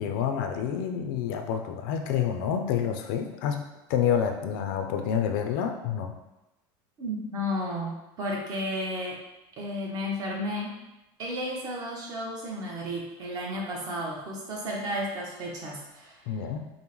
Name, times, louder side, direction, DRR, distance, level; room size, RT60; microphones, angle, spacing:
voice 1, 0.0-6.1 16.3-16.6, left 8 dB, 75° left, 5 dB, 0.5 m, -28 dB
voice 2, 7.0-9.2 9.6-10.8 11.2-16.3, equal, 35° right, -2 dB, 0.9 m, -33 dB
5.3 x 2.1 x 3.0 m, 0.94 s
cardioid pair, 160°, 11 cm